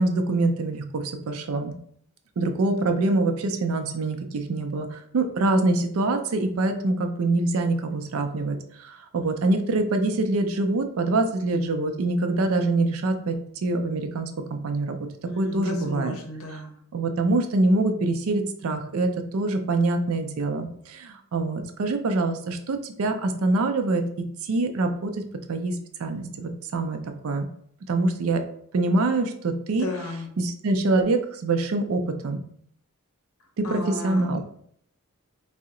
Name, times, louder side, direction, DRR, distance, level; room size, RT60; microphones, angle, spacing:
voice 1, 0.0-1.7 2.4-15.0 15.4-16.1 16.5-16.6 16.9-25.2 25.5-27.0 27.2-27.5 27.9-28.4 28.7-29.9 30.4-32.4 33.6-34.4, right 2 dB, 75° right, 6 dB, 0.4 m, -25 dB
voice 2, 15.2-16.8 29.7-30.3 33.6-34.4, left 2 dB, 70° left, 2 dB, 0.7 m, -34 dB
2.7 x 2.0 x 3.7 m, 0.65 s
head